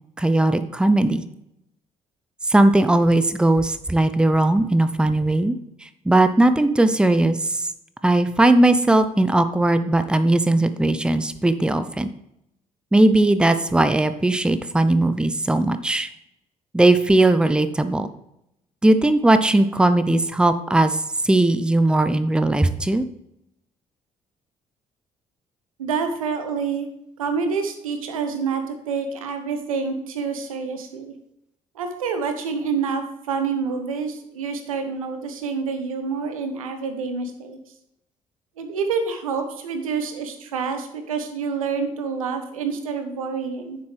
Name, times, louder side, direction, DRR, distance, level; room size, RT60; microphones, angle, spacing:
voice 1, 0.2-1.2 2.5-5.6 5.8-7.6 8.0-12.1 12.9-16.1 16.7-18.1 18.8-21.0 21.2-23.0, right 2 dB, 5° right, 11 dB, 0.6 m, -18 dB
voice 2, 25.8-26.9 27.2-31.1 31.7-37.6 38.6-43.8, right 5 dB, 80° right, 7 dB, 0.9 m, -27 dB
9.6 x 7.2 x 3.3 m, 0.80 s
figure-of-eight pair, 45°, 18 cm